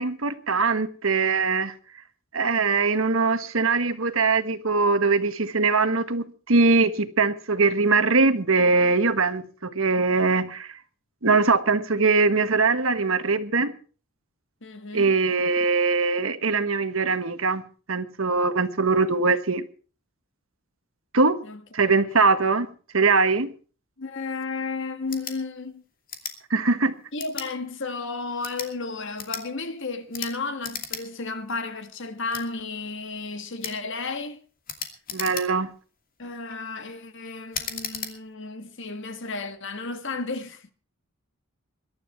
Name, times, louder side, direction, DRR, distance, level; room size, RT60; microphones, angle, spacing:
voice 1, 0.0-1.7 2.3-10.8 11.2-13.7 14.9-17.6 17.9-19.6 21.1-21.4 21.7-22.7 22.9-23.5 26.5-26.9 35.1-35.7, right 4 dB, 70° right, 1.5 m, -22 dB
voice 2, 14.6-15.1 21.4-21.6 22.0-22.2 24.0-25.8 27.1-34.4 36.2-40.7, left 3 dB, 60° left, 1.7 m, -33 dB
sound 1, 25.0-25.4 26.1-26.4 27.2-27.5 28.3-28.7 29.2-29.4 30.1-30.3 30.6-31.0 31.4-31.5 32.3-32.4 33.6-33.8 34.7-35.7 36.3-36.6 37.5-38.1, left 7 dB, 40° left, 2.6 m, -35 dB
22.0 x 12.0 x 4.5 m
head